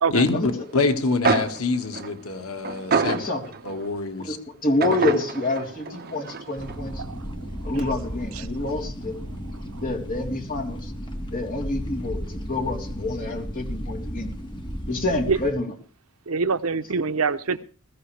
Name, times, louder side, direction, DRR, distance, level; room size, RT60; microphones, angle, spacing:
voice 1, 0.1-3.2 3.6-4.4, left 3 dB, 85° left, 1.8 m, -25 dB
sound 1, 0.9-1.0 1.2-3.9 4.8-6.7, right 4 dB, 45° right, 1.2 m, -27 dB
voice 2, 3.1-3.4 4.2-4.4 4.6-7.0 7.6-9.1 9.8-10.9 11.3-14.3 14.9-15.7, left 2 dB, 40° left, 3.5 m, -27 dB
sound 2, 6.6-15.5, equal, 20° left, 1.9 m, -34 dB
voice 3, 7.0-7.3 15.3-15.4 16.3-17.6, right 5 dB, 75° right, 0.8 m, -24 dB
21.0 x 15.5 x 3.4 m
head